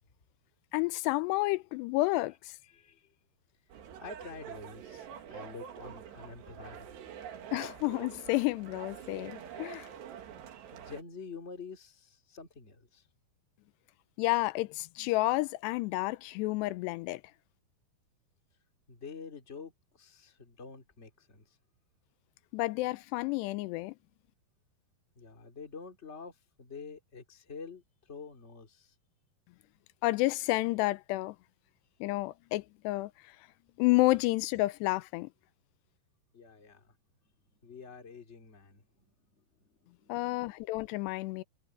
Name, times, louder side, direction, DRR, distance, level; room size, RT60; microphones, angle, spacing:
voice 1, 0.7-2.6 7.5-9.9 14.2-17.2 22.5-23.9 30.0-31.4 32.0-33.1 33.8-35.3 40.1-41.4, left 20 dB, 90° left, 2.8 m, -30 dB
voice 2, 2.6-3.1 4.0-6.9 10.7-13.1 18.9-21.6 25.2-28.9 36.3-36.9 37.6-40.4, left 5 dB, 20° left, 2.2 m, -48 dB
sound 1, 3.7-11.0, right 9 dB, 85° right, 4.3 m, -46 dB
omnidirectional pair, 4.8 m